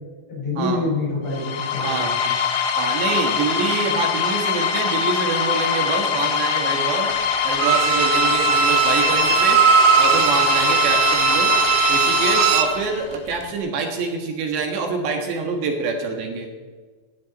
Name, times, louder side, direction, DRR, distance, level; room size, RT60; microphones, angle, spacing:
voice 1, 0.3-2.3, left 2 dB, 35° left, -4 dB, 6.1 m, -26 dB
sound 1, 1.3-13.1, left 7 dB, 85° left, 3.8 m, -23 dB
voice 2, 1.8-2.1 2.8-7.1 7.4-9.6 10.0-11.5 11.9-16.5, right 4 dB, 70° right, 3 dB, 3.5 m, -26 dB
Bowed string instrument, 7.6-12.8 13.1-13.2, right 7 dB, 85° right, 3.5 m, -19 dB
18.5 x 12.5 x 4.1 m, 1.4 s
omnidirectional pair, 5.4 m